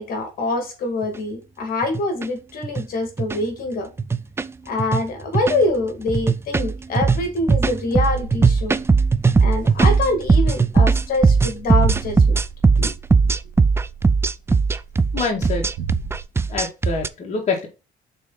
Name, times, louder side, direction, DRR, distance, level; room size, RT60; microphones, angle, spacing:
voice 1, 0.0-3.9 4.7-8.8 9.4-12.4 12.8-12.9, left 2 dB, 60° left, 2.1 m, -25 dB
sound 1, 1.0-1.1 1.8-2.2 2.6-2.8 3.2-3.4 4.0-4.5 4.8-5.0 5.3-5.7 6.1-17.1, right 4 dB, 15° right, 0.4 m, -18 dB
sound 2, 10.7-16.2, right 6 dB, 85° right, 1.4 m, -36 dB
voice 2, 15.1-15.7 16.5-17.7, left 4 dB, 45° left, 1.9 m, -25 dB
6.7 x 4.0 x 3.9 m
cardioid pair, 110°, 17 cm